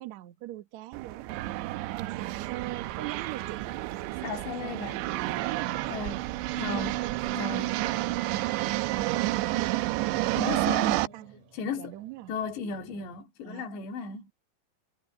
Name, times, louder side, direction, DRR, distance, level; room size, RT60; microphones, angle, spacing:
voice 1, 0.0-1.7 2.0-4.9 5.2-6.2 6.6-8.3 8.6-11.3 11.8-12.3 13.4-13.7, right 16 dB, 65° right, 1.8 m, -42 dB
sound 1, 0.9-11.1, right 17 dB, 85° right, 3.0 m, -30 dB
sound 2, 3.6-13.2, right 2 dB, 40° right, 3.8 m, -54 dB
voice 2, 4.2-5.1 5.9-6.2 6.6-7.0 7.3-7.8 10.4-11.1 11.5-11.9 12.3-14.3, left 4 dB, 75° left, 4.5 m, -35 dB
omnidirectional pair, 5.1 m